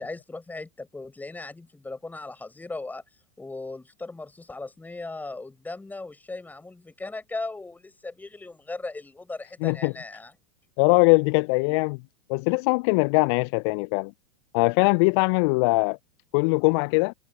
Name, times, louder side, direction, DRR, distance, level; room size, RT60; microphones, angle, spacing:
voice 1, 0.0-3.0 3.4-10.3, left 3 dB, 10° left, 6.2 m, -37 dB
voice 2, 9.6-9.9 10.8-12.0 12.3-14.1 14.5-16.0 16.3-17.1, left 31 dB, 45° left, 0.5 m, -21 dB
figure-of-eight pair, 95°, 20 cm